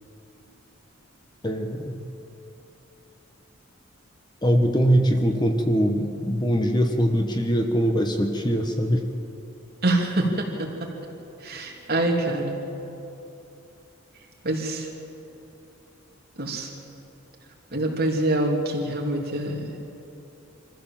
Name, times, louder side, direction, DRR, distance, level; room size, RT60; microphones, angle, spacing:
voice 1, 1.4-2.0 4.4-9.0, equal, 20° left, 4 dB, 1.2 m, -22 dB
voice 2, 9.8-10.9 11.4-12.6 14.4-14.9 16.4-16.7 17.7-19.7, right 1 dB, 50° right, -1 dB, 3.3 m, -25 dB
24.5 x 15.0 x 7.6 m, 2.9 s
head